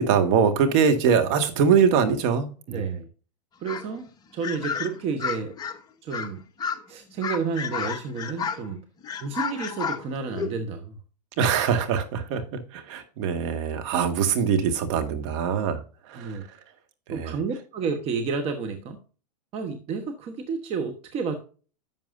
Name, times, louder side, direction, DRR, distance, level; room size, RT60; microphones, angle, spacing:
voice 1, 0.0-2.8 11.4-12.4 12.7-15.8 16.1-16.4 17.1-17.3, right 6 dB, 50° right, 7 dB, 1.8 m, -23 dB
voice 2, 2.7-3.1 3.6-5.5 6.0-6.4 6.9-8.8 9.2-11.0 16.1-16.4 17.1-19.0 19.5-21.4, right 5 dB, 30° right, 6 dB, 1.2 m, -31 dB
sound 1, 3.7-3.9 4.4-5.8 6.1-6.3 6.6-6.8 7.2-8.7 9.0-10.6, left 6 dB, 20° left, 1.0 m, -31 dB
11.0 x 7.2 x 2.6 m, 0.37 s
hypercardioid pair, 120°, 20 cm